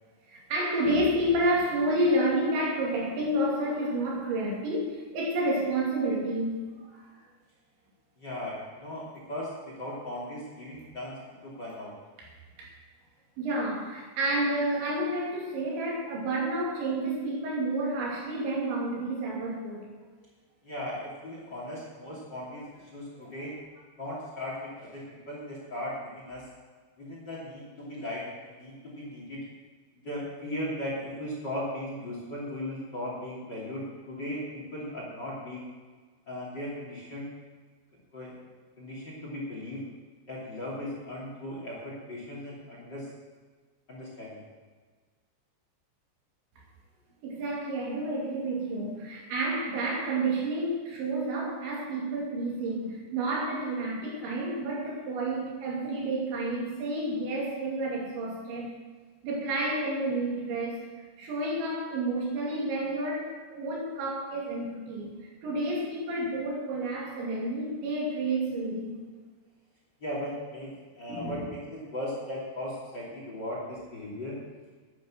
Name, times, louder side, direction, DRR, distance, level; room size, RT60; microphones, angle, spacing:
voice 1, 0.3-6.6 6.9-7.0 12.6-12.7 13.4-19.9 23.2-23.3 47.2-58.7 59.2-60.8 61.2-69.0 71.1-71.4, right 1 dB, 90° right, -3 dB, 5.1 m, -30 dB
voice 2, 8.2-11.9 20.6-23.5 24.0-26.5 27.0-29.4 29.9-35.7 36.3-37.3 38.1-38.4 38.8-39.8 40.3-43.1 43.9-44.4 70.0-74.4, left 1 dB, 30° left, -5 dB, 2.8 m, -37 dB
11.5 x 9.6 x 6.3 m, 1.4 s
omnidirectional pair, 5.1 m